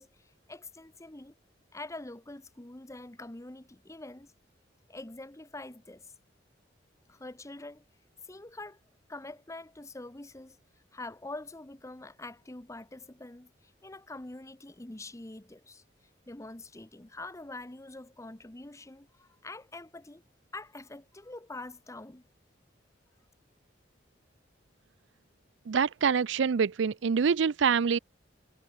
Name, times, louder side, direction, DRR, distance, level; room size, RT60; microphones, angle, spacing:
voice 1, 0.0-1.4 1.7-4.3 4.9-6.1 7.1-7.8 8.2-8.8 9.1-10.6 10.9-15.8 16.3-20.2 20.5-22.2, left 2 dB, 15° left, 0.9 m, -45 dB
voice 2, 25.7-28.0, right 6 dB, 70° right, 0.5 m, -25 dB
head